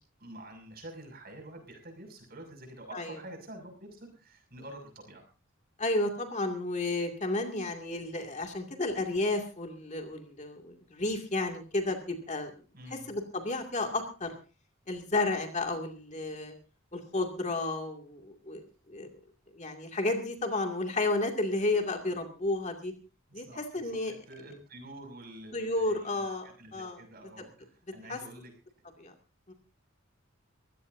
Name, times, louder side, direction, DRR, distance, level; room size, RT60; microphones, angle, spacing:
voice 1, 0.2-5.3 12.7-13.2 23.3-28.5, right 1 dB, 45° right, 4 dB, 6.4 m, -48 dB
voice 2, 5.8-12.5 13.1-14.3 14.9-16.5 16.9-19.1 19.5-22.9 23.3-23.4 23.7-24.1 25.5-27.0 28.1-28.2 29.0-29.1 29.5-29.6, left 2 dB, 35° left, 4 dB, 2.4 m, -32 dB
24.0 x 16.5 x 2.7 m, 0.34 s
head